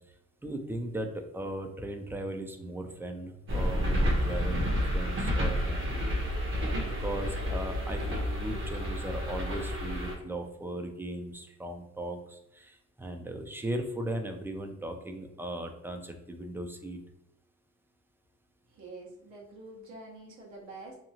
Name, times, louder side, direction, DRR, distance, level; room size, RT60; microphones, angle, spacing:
voice 1, 0.4-6.1 7.0-17.0, right 1 dB, 10° right, 5 dB, 0.4 m, -38 dB
sound 1, 3.5-10.1, equal, 45° right, 0.9 m, -30 dB
voice 2, 18.7-21.0, right 2 dB, 75° right, -4 dB, 1.1 m, -46 dB
2.8 x 2.3 x 2.8 m, 0.86 s
cardioid pair, 90°, 30 cm